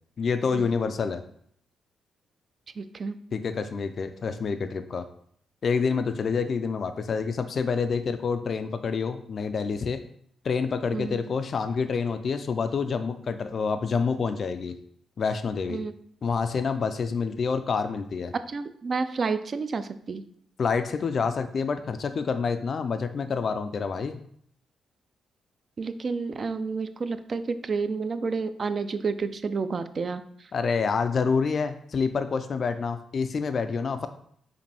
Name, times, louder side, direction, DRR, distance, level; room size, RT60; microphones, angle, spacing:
voice 1, 0.2-1.2 3.3-5.0 5.6-10.0 10.4-14.8 15.2-15.8 16.2-18.3 20.6-24.2 30.5-34.1, left 5 dB, 50° left, 9 dB, 0.3 m, -27 dB
voice 2, 2.8-3.2 10.9-11.2 15.7-15.9 18.3-20.2 25.8-30.5, right 4 dB, 45° right, 11 dB, 0.3 m, -30 dB
5.0 x 2.6 x 3.3 m, 0.65 s
cardioid pair, 90°, 0 cm